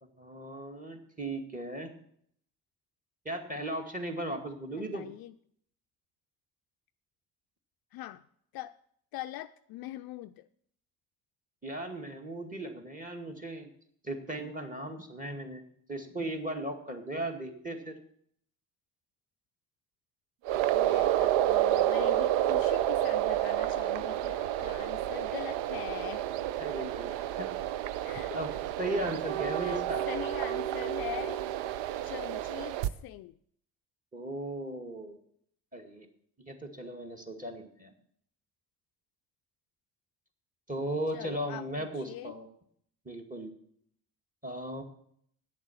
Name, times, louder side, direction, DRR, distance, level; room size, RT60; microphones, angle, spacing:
voice 1, 0.0-1.9 3.3-5.1 11.6-13.7 14.0-15.6 15.9-18.0 26.6-27.5 28.3-28.5 28.8-30.0 34.1-35.2 35.7-36.1 36.4-37.9 40.7-42.5 43.1-43.5 44.4-44.8, right 1 dB, 15° right, 5 dB, 2.1 m, -37 dB
voice 2, 4.7-5.3 7.9-8.2 8.5-8.7 9.1-10.5 20.7-26.3 28.0-28.4 29.6-29.8 30.1-31.4 32.0-33.4 41.1-42.3, left 15 dB, 50° left, 11 dB, 0.5 m, -42 dB
sound 1, 20.4-32.9, right 13 dB, 70° right, 0.7 m, -30 dB
9.0 x 7.3 x 7.1 m, 0.67 s
hypercardioid pair, 55°, 47 cm